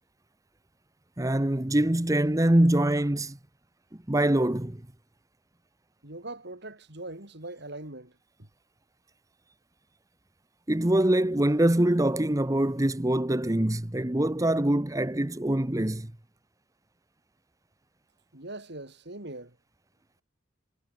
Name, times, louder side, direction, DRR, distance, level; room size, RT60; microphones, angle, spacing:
voice 1, 1.2-3.4 4.1-4.8 10.7-16.1, right 1 dB, 15° right, 0.9 m, -24 dB
voice 2, 6.0-8.1 8.4-8.5 18.3-19.6, right 2 dB, 55° right, 3.7 m, -41 dB
head